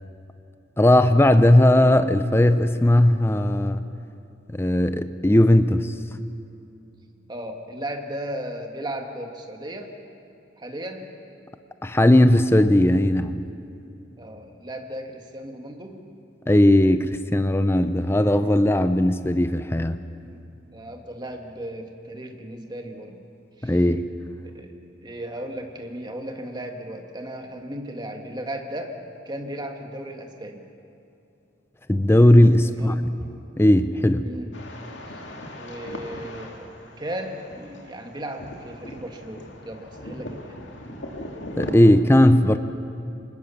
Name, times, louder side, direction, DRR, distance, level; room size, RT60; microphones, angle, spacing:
voice 1, 0.8-3.8 4.5-5.9 11.8-13.4 16.5-20.0 23.6-24.1 31.9-32.9 33.6-34.3 41.6-42.6, left 1 dB, 15° left, 10 dB, 0.6 m, -17 dB
voice 2, 7.3-9.9 10.6-11.1 14.2-16.0 20.2-23.2 23.6-23.8 24.5-29.0 29.3-30.6 32.7-33.1 34.2-34.5 35.1-35.2 35.6-40.7, right 1 dB, 25° right, 3 dB, 1.8 m, -36 dB
sound 1, 34.5-41.7, left 1 dB, 70° left, 2.6 m, -39 dB
25.5 x 20.0 x 7.1 m, 2.7 s
head